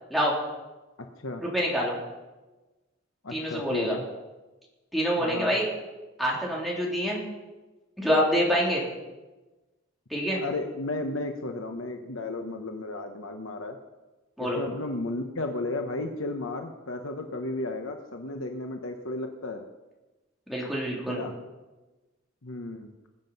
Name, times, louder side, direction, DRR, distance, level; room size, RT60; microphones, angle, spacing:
voice 1, 1.4-2.0 3.3-4.0 4.9-5.7 6.2-7.2 8.0-8.8 10.1-10.4 14.4-14.6 20.5-21.2, equal, ahead, -5 dB, 3.2 m, -26 dB
voice 2, 3.2-4.0 5.2-5.6 10.4-13.8 14.4-19.6 21.1-21.3 22.4-22.9, left 2 dB, 80° left, 4 dB, 1.0 m, -33 dB
21.0 x 7.5 x 5.4 m, 1.1 s
head